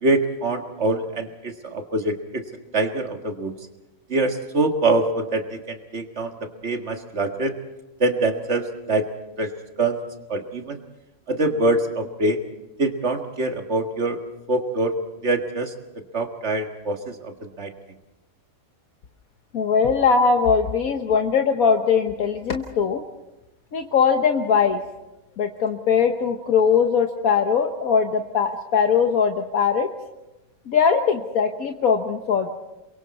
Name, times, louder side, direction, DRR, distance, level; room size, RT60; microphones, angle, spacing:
voice 1, 0.0-2.4 2.7-3.5 4.1-6.4 6.6-7.5 8.0-9.1 9.4-9.5 9.8-10.0 10.3-10.8 11.3-12.4 12.8-14.2 14.5-14.9 15.2-15.7 16.1-17.7, right 2 dB, 55° right, 4 dB, 2.0 m, -24 dB
voice 2, 19.5-23.0 23.7-24.8 25.4-29.9 30.7-32.5, left 6 dB, 80° left, 4 dB, 1.6 m, -20 dB
28.5 x 23.0 x 4.2 m, 0.97 s
omnidirectional pair, 1.5 m